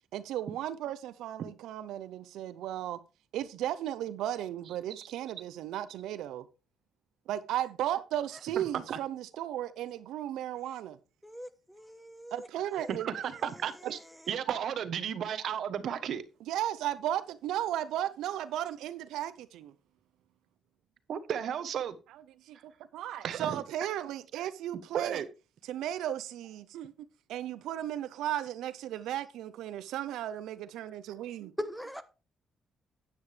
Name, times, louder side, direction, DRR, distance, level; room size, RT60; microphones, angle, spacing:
voice 1, 0.1-3.0 3.3-6.5 7.3-11.0 12.3-13.1 16.5-19.7 22.5-25.2 25.6-26.9 27.3-31.5, right 12 dB, 85° right, 0.6 m, -35 dB
voice 2, 11.2-12.5 12.8-12.9 31.6-32.0, left 1 dB, ahead, 1.1 m, -40 dB
voice 3, 12.9-14.0 14.3-16.2 21.1-21.9 23.2-23.6 24.9-25.3, right 8 dB, 65° right, 1.0 m, -33 dB
9.7 x 9.4 x 3.3 m
cardioid pair, 90°, 0 cm